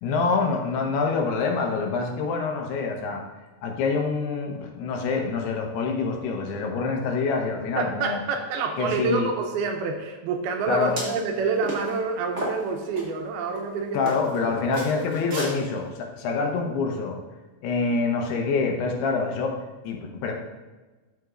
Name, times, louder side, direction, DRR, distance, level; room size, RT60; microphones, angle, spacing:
voice 1, 0.0-3.2 3.6-8.2 8.8-9.3 10.7-11.0 13.9-17.2 17.6-19.6 19.8-20.3, left 4 dB, 80° left, 2 dB, 3.0 m, -26 dB
voice 2, 7.8-14.1 14.7-15.4, right 4 dB, 80° right, 3 dB, 2.5 m, -28 dB
sound 1, 10.8-11.2 11.6-11.9 12.4-13.0 13.5-13.6 14.0-14.4 14.7-15.5, right 1 dB, 40° right, 1.3 m, -33 dB
12.5 x 6.0 x 2.5 m, 1.2 s
omnidirectional pair, 4.7 m